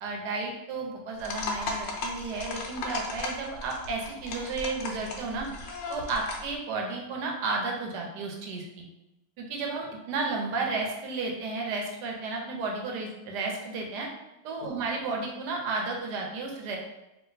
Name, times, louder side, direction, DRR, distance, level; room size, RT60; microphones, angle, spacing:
voice 1, 0.0-5.5 5.9-8.8 9.4-14.1 14.4-16.8, right 3 dB, 65° right, 0 dB, 1.2 m, -33 dB
sound 1, 1.2-6.5, left 3 dB, 80° left, 1.3 m, -36 dB
3.4 x 2.7 x 3.9 m, 0.93 s
omnidirectional pair, 2.1 m